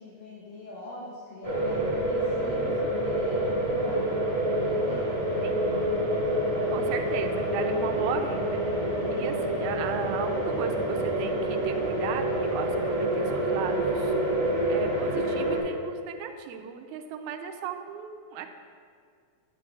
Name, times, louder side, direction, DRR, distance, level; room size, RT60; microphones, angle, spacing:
voice 1, 0.0-2.7 3.0-4.1 4.6-5.1 9.0-9.5, left 2 dB, 65° left, -8 dB, 2.2 m, -43 dB
sound 1, 1.4-15.6, right 1 dB, 20° right, 0.7 m, -27 dB
voice 2, 2.3-2.8 5.4-5.7 6.7-8.9 9.1-14.2 14.7-18.5, right 7 dB, 80° right, 5 dB, 1.9 m, -36 dB
9.3 x 9.0 x 2.4 m, 2.1 s
omnidirectional pair, 3.5 m